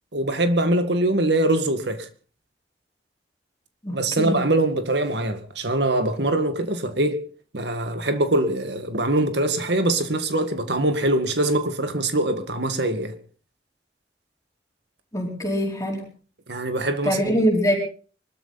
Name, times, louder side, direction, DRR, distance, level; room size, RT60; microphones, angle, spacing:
voice 1, 0.1-2.1 3.9-7.2 7.5-13.1 16.5-17.4, right 1 dB, 75° right, 2.0 m, -23 dB
voice 2, 3.8-4.4 15.1-16.0 17.0-17.8, equal, 20° left, 4.6 m, -23 dB
24.0 x 13.0 x 4.2 m
head